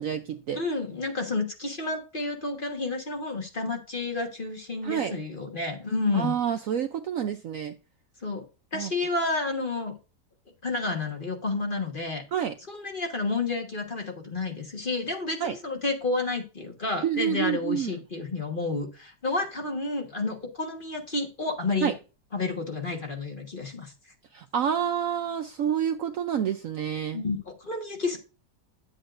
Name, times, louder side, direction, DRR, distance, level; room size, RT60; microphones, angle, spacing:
voice 1, 0.0-0.6 4.8-5.1 6.1-7.7 8.7-8.9 12.3-12.5 15.4-15.5 17.0-18.0 21.8-21.9 24.3-27.2, right 9 dB, 65° right, 0.8 m, -28 dB
voice 2, 0.5-6.4 8.2-8.4 8.7-9.9 10.6-12.2 12.7-21.9 22.3-23.9 27.1-28.2, left 3 dB, 30° left, 1.4 m, -30 dB
9.5 x 7.9 x 2.5 m
omnidirectional pair, 1.8 m